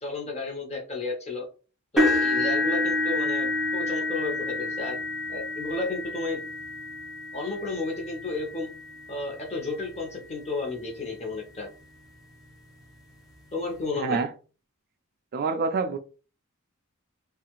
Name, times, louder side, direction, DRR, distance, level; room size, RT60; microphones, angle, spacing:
voice 1, 0.0-1.4 1.9-5.0 5.3-6.4 7.3-8.7 9.1-11.7 13.5-14.2, left 3 dB, 30° left, 0.9 m, -32 dB
sound 1, 2.0-10.0 10.6-10.9 11.3-11.4 12.8-12.9, left 2 dB, ahead, 0.7 m, -29 dB
voice 2, 14.0-14.3 15.3-16.0, right 4 dB, 45° right, 0.3 m, -26 dB
2.7 x 2.4 x 2.9 m
head